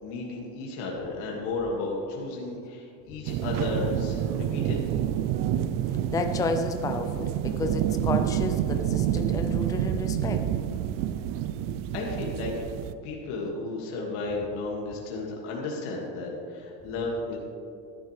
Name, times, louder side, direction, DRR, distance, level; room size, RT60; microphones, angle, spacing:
voice 1, 0.0-5.0 11.9-12.5 13.0-17.4, left 3 dB, 75° left, -2 dB, 2.2 m, -33 dB
sound 1, 3.3-12.9, right 11 dB, 55° right, 0.5 m, -28 dB
voice 2, 6.1-10.4, left 3 dB, 10° left, 5 dB, 0.4 m, -31 dB
13.5 x 10.5 x 3.3 m, 2.5 s
cardioid pair, 145°, 40 cm